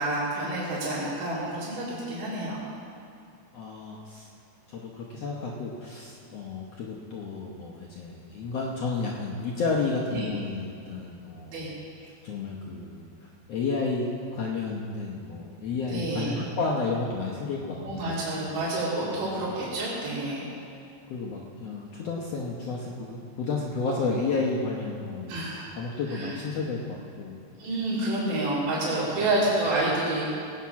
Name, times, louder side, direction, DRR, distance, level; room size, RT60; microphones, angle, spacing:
voice 1, 0.0-2.6 10.1-10.3 11.5-11.7 15.9-16.4 17.8-20.5 25.3-25.6 26.1-26.3 27.6-30.4, right 2 dB, 70° right, -10 dB, 4.1 m, -28 dB
voice 2, 3.5-4.3 4.7-11.6 12.0-18.2 19.0-19.3 21.1-27.3 29.2-29.3, left 3 dB, 65° left, -3 dB, 1.6 m, -32 dB
18.0 x 8.5 x 5.8 m, 2.5 s
omnidirectional pair, 4.0 m